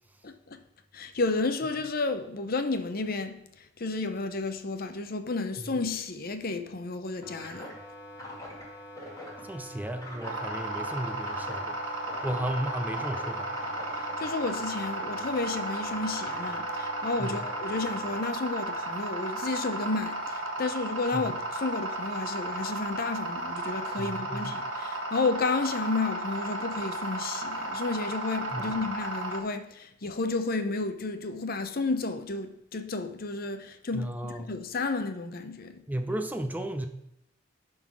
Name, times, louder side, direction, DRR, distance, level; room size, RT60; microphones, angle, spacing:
voice 1, 0.2-0.6 0.9-7.7 13.9-35.8, left 3 dB, 50° left, 0.7 m, -32 dB
sound 1, 7.2-18.2, left 1 dB, 20° left, 1.9 m, -44 dB
voice 2, 9.4-11.8 12.2-13.5 17.2-17.4 21.1-21.3 24.0-24.6 28.5-28.8 33.9-34.5 35.9-36.9, right 1 dB, 10° right, 0.5 m, -34 dB
sound 2, 10.2-29.4, right 1 dB, 80° right, 1.6 m, -34 dB
11.5 x 3.9 x 6.0 m
head